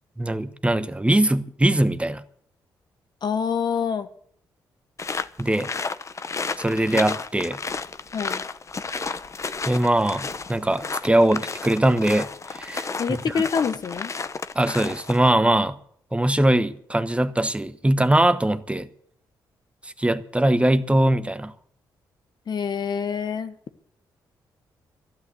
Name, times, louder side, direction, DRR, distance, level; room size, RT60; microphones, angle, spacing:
voice 1, 0.2-2.2 5.4-5.7 6.6-7.6 9.7-13.4 14.5-15.8 16.1-18.9 19.8-21.5, right 1 dB, 15° right, 1.0 m, -21 dB
voice 2, 3.2-4.1 8.1-8.4 13.0-14.1 22.5-23.5, left 6 dB, 55° left, 1.2 m, -26 dB
sound 1, 5.0-15.3, left 4 dB, 35° left, 0.8 m, -32 dB
12.0 x 11.0 x 8.0 m
supercardioid pair, 60°, 9 cm